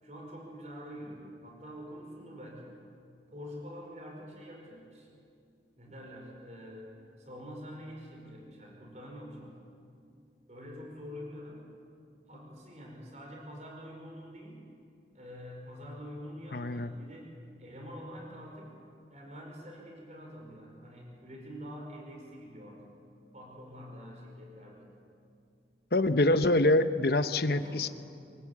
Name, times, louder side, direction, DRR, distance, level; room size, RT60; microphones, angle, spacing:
voice 1, 0.0-2.8 3.3-5.1 5.8-6.9 7.2-9.6 10.5-11.7 12.3-14.7 15.1-17.3 17.6-18.8 19.1-23.0 23.3-24.9 27.6-27.9, equal, 40° right, 0 dB, 4.9 m, -46 dB
voice 2, 16.5-16.9 25.9-27.9, left 2 dB, 60° left, 10 dB, 1.0 m, -25 dB
24.5 x 23.0 x 8.7 m, 2.5 s
head